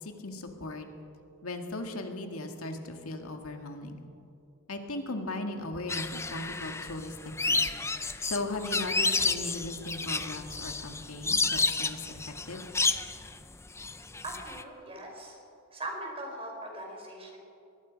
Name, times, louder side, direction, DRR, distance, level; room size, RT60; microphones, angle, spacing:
voice 1, 0.0-0.9 1.4-4.0 4.7-7.2 7.4-7.7 8.2-12.6, left 2 dB, 80° left, 4 dB, 2.1 m, -37 dB
sound 1, 5.9-14.6, left 3 dB, 15° left, 0.7 m, -31 dB
voice 2, 14.2-15.3 15.7-17.4, right 1 dB, 25° right, 0 dB, 5.2 m, -40 dB
24.0 x 20.5 x 5.3 m, 2.6 s
head